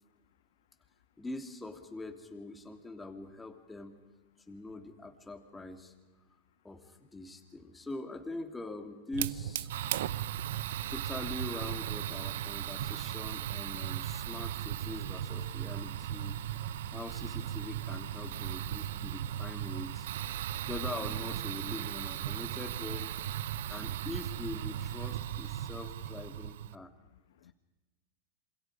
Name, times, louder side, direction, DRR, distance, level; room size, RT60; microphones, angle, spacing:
voice 1, 1.2-4.0 4.5-5.9 6.6-9.7 10.4-10.5 10.9-20.1 20.6-23.1 23.4-26.9, left 2 dB, 10° left, 2.6 m, -43 dB
Fire, 9.1-26.7, right 11 dB, 80° right, 0.7 m, -37 dB
voice 2, 27.1-27.5, left 10 dB, 85° left, 1.1 m, -55 dB
27.5 x 26.5 x 5.0 m
supercardioid pair, 145°, 0 cm